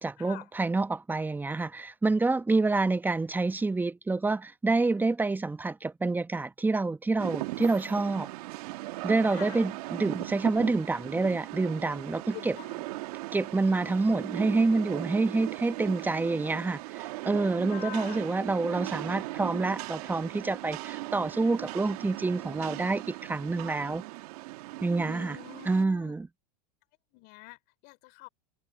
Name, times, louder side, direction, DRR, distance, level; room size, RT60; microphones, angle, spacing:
voice 1, 0.0-8.3 9.0-12.6 13.3-24.0 24.8-25.4 25.7-26.3, right 3 dB, 10° right, 1.1 m, -27 dB
Rain, 7.2-25.8, right 21 dB, 70° right, 2.2 m, -38 dB
voice 2, 9.3-9.6 12.3-13.0 13.6-14.1 17.7-18.2 25.0-26.2 27.1-28.3, left 23 dB, 55° left, 4.1 m, -46 dB
hypercardioid pair, 110°, 20 cm